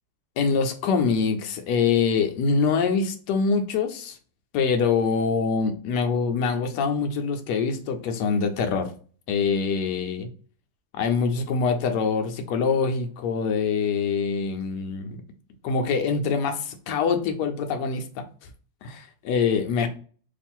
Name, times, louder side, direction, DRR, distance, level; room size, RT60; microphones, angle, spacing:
voice 1, 0.4-4.2 4.5-8.9 9.3-10.3 10.9-15.2 15.6-18.2 18.8-19.9, left 5 dB, 70° left, 1.1 m, -24 dB
3.0 x 2.4 x 4.3 m
omnidirectional pair, 2.0 m